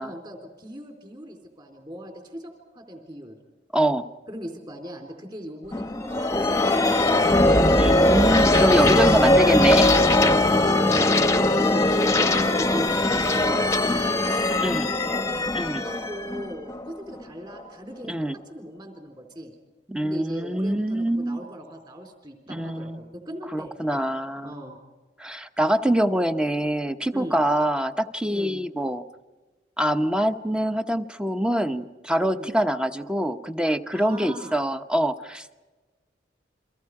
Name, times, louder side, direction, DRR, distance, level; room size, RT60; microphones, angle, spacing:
voice 1, 0.0-3.4 4.3-7.3 9.8-10.0 10.3-11.0 11.3-15.4 15.7-18.2 18.5-19.5 20.0-24.0 24.4-24.8 27.1-27.5 28.3-28.6 32.3-32.6 33.9-34.6, equal, 25° right, 4 dB, 3.9 m, -39 dB
voice 2, 3.7-4.1 7.8-9.9 14.6-14.9 15.5-15.8 18.0-18.4 19.9-21.4 22.5-23.0 23.5-24.5 25.2-29.0 29.8-35.7, right 1 dB, 5° right, 9 dB, 0.9 m, -24 dB
sound 1, 5.7-17.2, left 2 dB, 15° left, 1.0 m, -20 dB
30.0 x 24.5 x 4.9 m, 1.2 s
head